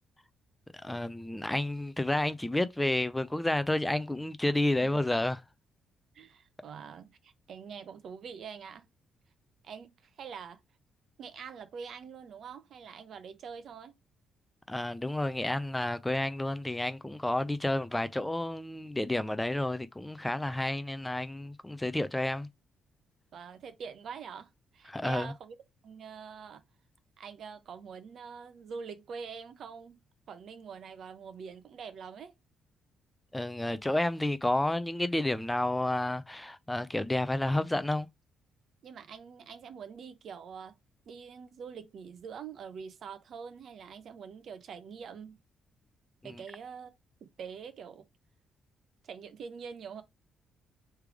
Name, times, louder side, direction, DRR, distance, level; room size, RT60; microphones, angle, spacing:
voice 1, 0.8-5.4 14.7-22.5 24.9-25.3 33.3-38.1, left 1 dB, 10° left, 0.4 m, -30 dB
voice 2, 6.1-8.9 9.6-10.6 11.2-13.9 23.3-25.6 25.8-26.6 27.2-30.0 30.3-32.3 38.8-40.8 41.1-45.4 46.2-46.9 47.2-48.1 49.0-50.0, right 6 dB, 60° right, 0.8 m, -45 dB
3.4 x 3.3 x 4.8 m
cardioid pair, 90°, 0 cm